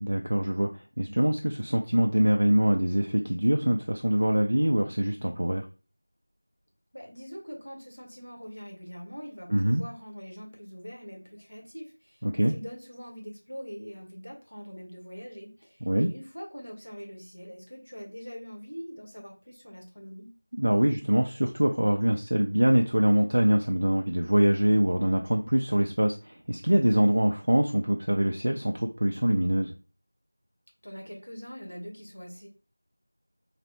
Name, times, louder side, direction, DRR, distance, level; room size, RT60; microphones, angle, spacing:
voice 1, 0.0-5.7 9.5-9.8 12.2-12.5 15.8-16.1 20.6-29.7, right 1 dB, 60° right, 3 dB, 0.3 m, -24 dB
voice 2, 6.9-20.3 30.8-32.5, equal, 75° left, 1 dB, 1.2 m, -43 dB
3.2 x 2.0 x 2.8 m, 0.35 s
figure-of-eight pair, 175°, 0 cm